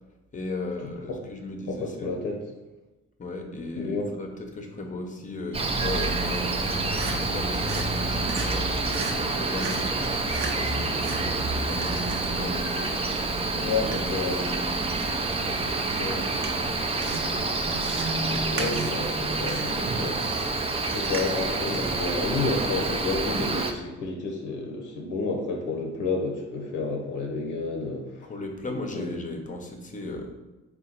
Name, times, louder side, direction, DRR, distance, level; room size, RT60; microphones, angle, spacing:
voice 1, 0.3-2.1 3.2-9.8 10.3-12.6 13.4-13.8 14.3-17.5 28.2-30.3, left 2 dB, 25° left, 4 dB, 0.7 m, -37 dB
voice 2, 0.8-1.3 1.7-2.4 3.7-4.1 13.6-14.5 18.5-20.5 20.9-28.3 28.7-29.2, left 3 dB, 90° left, 2 dB, 0.7 m, -30 dB
Cricket, 5.5-23.7, right 3 dB, 20° right, 0.4 m, -28 dB
sound 1, 6.5-22.1, right 3 dB, 70° right, 0.8 m, -41 dB
3.8 x 2.2 x 4.3 m, 1.1 s
cardioid pair, 90°, 30 cm